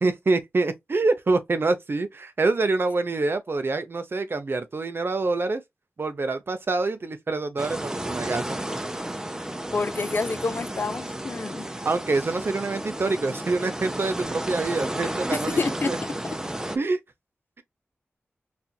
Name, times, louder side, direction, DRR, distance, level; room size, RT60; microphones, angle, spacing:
voice 1, 0.0-5.6 6.0-8.6 11.8-15.6 15.9-16.0 16.7-17.0, right 3 dB, 55° right, 0.6 m, -26 dB
sound 1, 7.6-16.8, right 1 dB, 15° right, 0.6 m, -32 dB
voice 2, 9.7-11.7 15.3-16.0, left 3 dB, 50° left, 0.4 m, -28 dB
4.2 x 2.5 x 2.3 m
cardioid pair, 55°, 4 cm